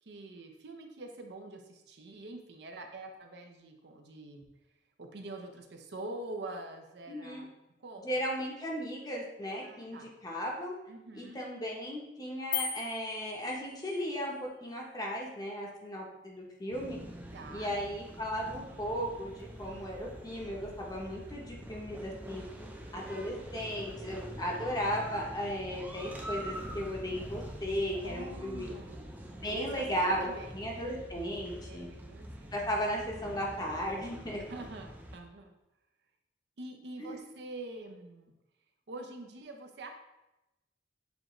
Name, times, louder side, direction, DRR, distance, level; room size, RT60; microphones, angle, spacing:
voice 1, 0.0-4.5 5.0-7.5 7.8-8.1 9.4-10.1 10.9-11.4 17.3-17.7 28.0-29.0 29.5-29.8 30.2-30.8 31.7-32.6 34.5-35.5 36.6-38.3 38.9-39.9, right 2 dB, 65° right, 4 dB, 0.6 m, -45 dB
voice 2, 7.1-7.4 8.0-10.7 11.1-14.3 14.6-17.0 17.5-22.4 22.9-28.7 29.4-30.3 30.5-31.9 32.5-34.4 37.0-37.2, equal, 20° left, -2 dB, 0.7 m, -36 dB
sound 1, 12.5-14.1, left 8 dB, 50° left, 0.3 m, -37 dB
sound 2, 16.7-35.2, equal, 10° right, 0.4 m, -45 dB
7.0 x 2.5 x 3.0 m, 0.95 s
head